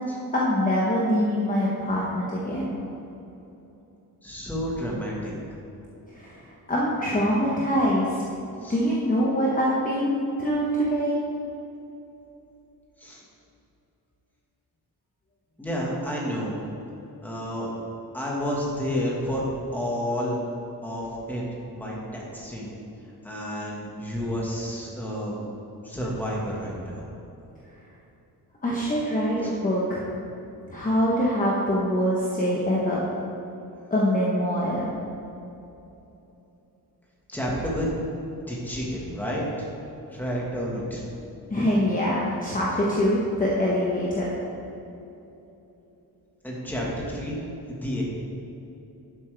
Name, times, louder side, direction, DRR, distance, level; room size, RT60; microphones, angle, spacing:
voice 1, 0.3-2.8 6.1-8.3 8.7-11.2 28.6-30.0 30.7-33.0 33.9-34.9 41.5-44.3, equal, 20° left, -5 dB, 1.0 m, -24 dB
voice 2, 4.2-5.3 8.6-8.8 13.0-13.2 15.6-16.6 17.2-17.7 18.1-19.4 19.7-20.4 20.8-21.4 21.7-22.7 23.2-25.4 25.8-27.1 29.4-29.5 37.3-37.9 38.5-39.7 40.1-41.0 46.4-47.4 47.7-48.0, equal, 5° left, -4 dB, 1.6 m, -30 dB
11.5 x 7.6 x 3.4 m, 3.0 s
wide cardioid pair, 180°, 38 cm